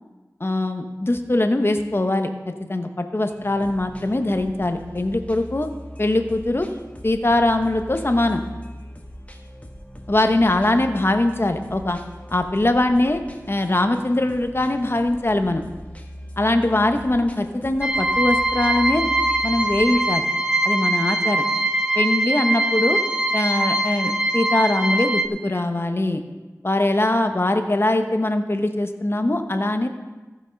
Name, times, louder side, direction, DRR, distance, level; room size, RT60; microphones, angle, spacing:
voice 1, 0.4-2.3 2.7-5.7 6.0-6.7 7.0-8.4 10.1-12.0 12.3-13.2 13.5-15.6 16.4-19.1 19.4-20.3 20.6-21.5 21.9-23.0 23.3-26.2 26.6-29.9, left 1 dB, 40° left, 7 dB, 0.9 m, -21 dB
sound 1, 3.2-20.2, equal, 25° left, 1.2 m, -40 dB
sound 2, 17.8-25.3, right 1 dB, 10° right, 0.7 m, -22 dB
15.0 x 6.3 x 5.2 m, 1.2 s
wide cardioid pair, 55°, 6 cm